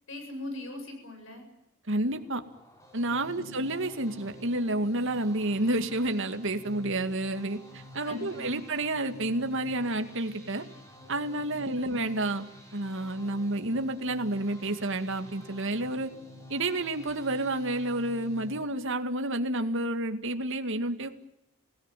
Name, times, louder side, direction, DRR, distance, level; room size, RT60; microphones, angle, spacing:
voice 1, 0.1-1.5 3.3-3.7 8.0-8.7 11.6-12.0, left 2 dB, 65° left, 5 dB, 7.9 m, -41 dB
voice 2, 1.9-2.4 2.9-10.6 11.1-16.1 16.5-21.1, right 1 dB, 60° right, 7 dB, 2.3 m, -30 dB
sound 1, 2.1-18.6, left 1 dB, 15° left, 6.0 m, -49 dB
27.0 x 18.0 x 9.3 m, 0.82 s
head